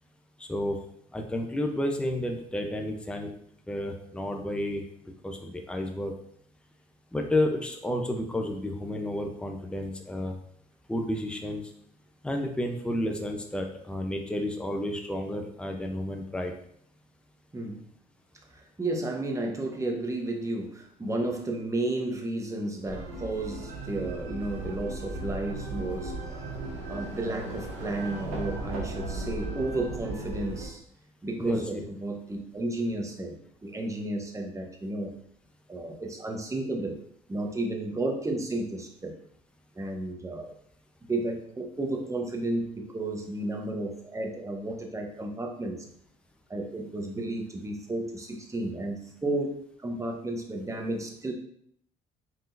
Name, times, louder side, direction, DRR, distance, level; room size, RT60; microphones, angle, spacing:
voice 1, 0.4-0.8 1.1-3.3 3.7-4.8 5.2-6.1 7.1-10.3 10.9-11.6 12.2-16.5 31.4-31.8, left 1 dB, 5° left, 3 dB, 0.8 m, -31 dB
voice 2, 18.5-26.2 26.9-30.8 31.2-35.1 35.7-37.0 37.3-39.2 39.7-40.5 41.1-45.8 46.5-51.3, right 2 dB, 15° right, 2 dB, 1.1 m, -32 dB
sound 1, 22.9-30.7, right 2 dB, 80° right, 1.7 m, -36 dB
5.4 x 3.7 x 2.7 m, 0.66 s
hypercardioid pair, 65°, 19 cm